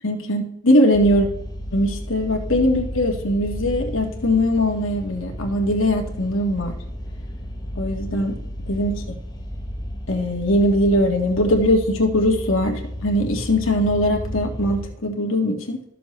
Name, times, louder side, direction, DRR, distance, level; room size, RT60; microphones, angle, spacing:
voice 1, 0.0-1.3 1.7-6.7 7.8-8.3 8.7-9.0 10.1-15.8, left 1 dB, 75° left, 2 dB, 1.8 m, -20 dB
sound 1, 0.9-14.9, equal, 20° left, 1.0 m, -33 dB
12.5 x 6.8 x 3.2 m, 0.72 s
head